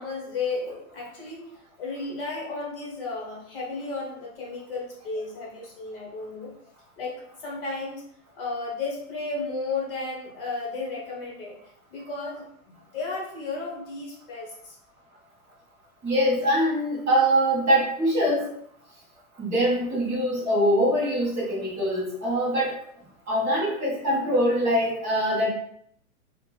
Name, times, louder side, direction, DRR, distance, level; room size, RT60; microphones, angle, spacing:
voice 1, 0.0-6.5 7.0-8.0 8.3-14.8, left 3 dB, 40° left, -3 dB, 0.9 m, -34 dB
voice 2, 16.0-18.5 19.4-22.7 23.3-25.5, equal, 5° right, -17 dB, 0.6 m, -23 dB
2.9 x 2.1 x 3.2 m, 0.68 s
supercardioid pair, 180°, 41 cm